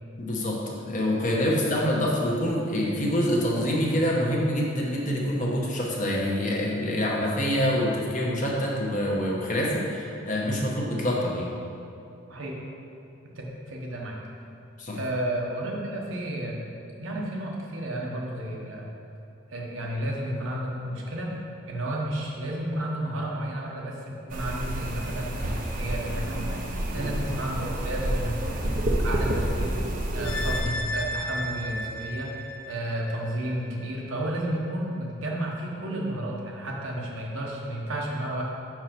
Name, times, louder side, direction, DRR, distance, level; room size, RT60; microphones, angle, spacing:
voice 1, 0.2-11.6 14.8-15.0 26.9-27.1, equal, 35° left, -3 dB, 1.0 m, -26 dB
voice 2, 13.3-14.2 14.9-16.6 17.0-18.9 19.5-21.4 21.7-28.7 29.0-29.8 30.1-32.4 32.7-38.4, right 1 dB, 70° right, -2 dB, 1.1 m, -32 dB
sound 1, 24.3-30.6, right 1 dB, 40° right, 0.6 m, -29 dB
sound 2, 30.2-33.5 33.8-33.9, left 1 dB, 80° left, 0.7 m, -32 dB
5.6 x 4.7 x 5.8 m, 2.7 s
head